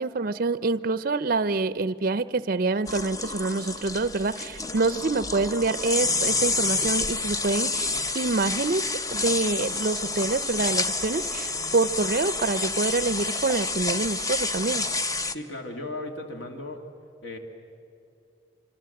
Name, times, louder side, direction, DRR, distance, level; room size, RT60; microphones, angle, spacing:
voice 1, 0.0-8.8 9.1-14.8, right 3 dB, 45° right, 15 dB, 0.5 m, -26 dB
sound 1, 2.9-15.3, left 3 dB, 20° left, 0.7 m, -29 dB
voice 2, 15.3-16.8 17.2-17.4, left 2 dB, 65° left, 4 dB, 2.2 m, -36 dB
26.0 x 25.0 x 7.8 m, 2.7 s
head